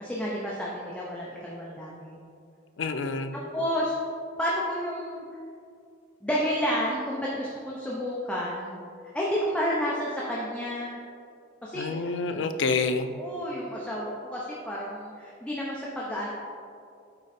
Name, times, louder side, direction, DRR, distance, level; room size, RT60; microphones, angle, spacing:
voice 1, 0.0-2.2 3.5-3.9 4.4-5.2 6.2-8.8 9.1-11.0 11.6-12.4 13.2-16.3, equal, 5° left, -5 dB, 0.6 m, -31 dB
voice 2, 2.8-3.3 11.7-13.2, left 4 dB, 80° left, 8 dB, 0.5 m, -28 dB
8.6 x 3.8 x 4.2 m, 2.4 s
head